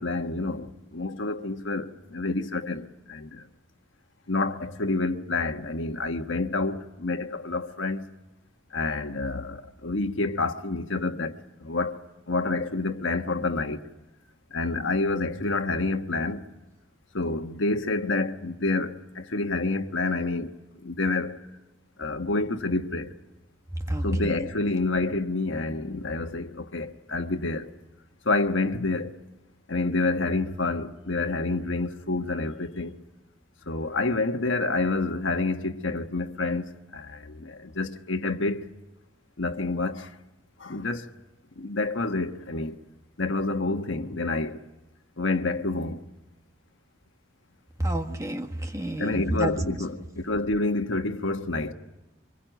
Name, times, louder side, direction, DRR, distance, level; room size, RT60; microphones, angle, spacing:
voice 1, 0.0-3.4 4.3-8.0 8.7-11.3 11.6-12.0 12.3-13.8 14.5-16.4 17.1-20.5 20.8-21.4 22.0-23.1 24.0-27.7 28.2-29.2 29.7-32.9 33.7-36.6 36.9-38.7 39.4-40.1 40.6-41.1 41.6-42.8 43.2-44.6 45.2-46.0 49.0-51.7, left 3 dB, 80° left, 1.3 m, -28 dB
voice 2, 23.9-24.5 47.8-49.8, right 1 dB, 15° right, 1.6 m, -29 dB
24.5 x 21.5 x 9.1 m
head